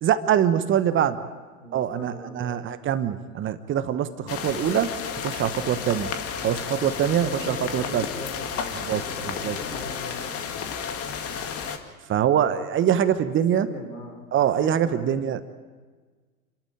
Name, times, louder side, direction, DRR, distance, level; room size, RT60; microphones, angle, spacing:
voice 1, 0.0-1.1 1.7-4.9 5.2-6.1 6.4-8.1 8.9-9.0 9.4-9.6 12.1-13.7 14.3-15.4, right 10 dB, 25° right, 12 dB, 1.1 m, -23 dB
voice 2, 1.6-2.7 6.4-10.7 13.5-14.2 14.6-15.2, left 2 dB, 80° left, 4 dB, 5.2 m, -39 dB
sound 1, 4.3-11.8, left 7 dB, 30° left, 2.2 m, -32 dB
28.5 x 14.0 x 9.1 m, 1.4 s
hypercardioid pair, 95°, 44 cm